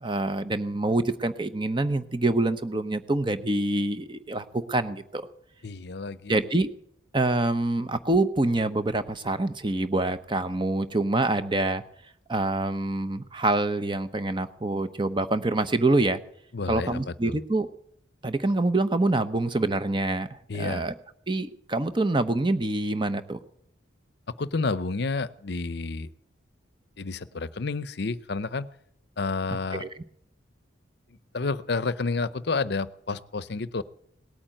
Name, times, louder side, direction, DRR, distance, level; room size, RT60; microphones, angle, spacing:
voice 1, 0.0-5.3 6.3-6.7 7.1-11.8 12.3-16.2 16.7-17.7 18.2-20.9 21.3-23.4 29.5-29.9, right 2 dB, 25° right, 11 dB, 0.9 m, -26 dB
voice 2, 5.6-6.3 16.5-17.4 20.5-20.9 24.4-26.1 27.0-28.7 29.2-29.8 31.3-33.8, left 3 dB, 60° left, 17 dB, 0.7 m, -30 dB
18.5 x 8.8 x 9.0 m, 0.69 s
head